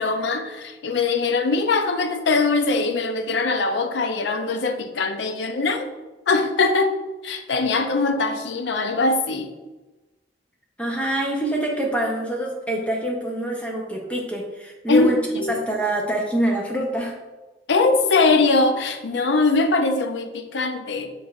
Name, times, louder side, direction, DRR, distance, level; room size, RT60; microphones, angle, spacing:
voice 1, 0.0-5.9 6.3-7.0 7.2-9.5 14.9-15.6 17.7-21.1, left 3 dB, 90° left, 7 dB, 0.5 m, -21 dB
voice 2, 10.8-15.2 15.5-17.2, right 1 dB, 5° left, -1 dB, 0.6 m, -25 dB
6.7 x 3.2 x 2.3 m, 1.1 s
head